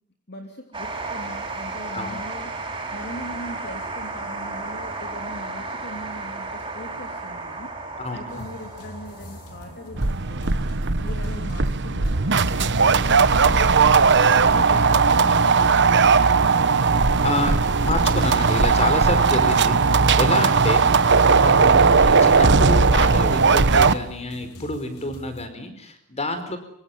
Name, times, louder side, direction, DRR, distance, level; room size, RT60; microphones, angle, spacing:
voice 1, 0.3-10.5 11.0-16.3 26.5-26.6, left 1 dB, 50° left, 4 dB, 3.1 m, -40 dB
sound 1, 0.7-13.7, right 3 dB, 20° right, 6.6 m, -34 dB
voice 2, 8.0-8.5 16.9-20.9 21.3-26.6, left 1 dB, 30° left, 9 dB, 4.9 m, -28 dB
sound 2, 8.3-25.5, left 1 dB, 85° left, 3.3 m, -44 dB
sound 3, 10.0-23.9, right 4 dB, 55° right, 1.2 m, -18 dB
26.0 x 24.0 x 9.2 m, 0.65 s
head